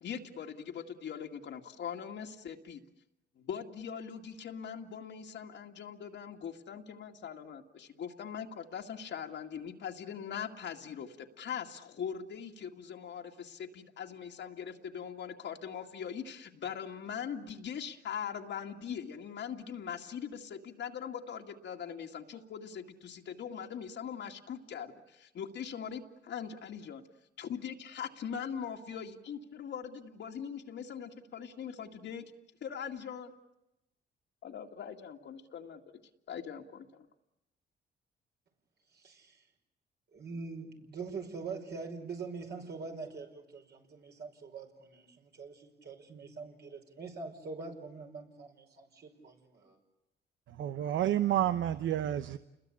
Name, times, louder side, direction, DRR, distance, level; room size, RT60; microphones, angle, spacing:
voice 1, 0.0-2.8 3.4-27.0 27.4-32.2 32.6-33.3 34.4-35.8 36.3-37.1, left 7 dB, 65° left, 2 dB, 2.1 m, -41 dB
voice 2, 38.9-39.4 40.1-49.8, right 4 dB, 55° right, 2 dB, 5.5 m, -44 dB
voice 3, 50.5-52.4, right 11 dB, 75° right, 13 dB, 0.9 m, -30 dB
29.5 x 21.5 x 8.5 m, 0.92 s
cardioid pair, 90°, 20 cm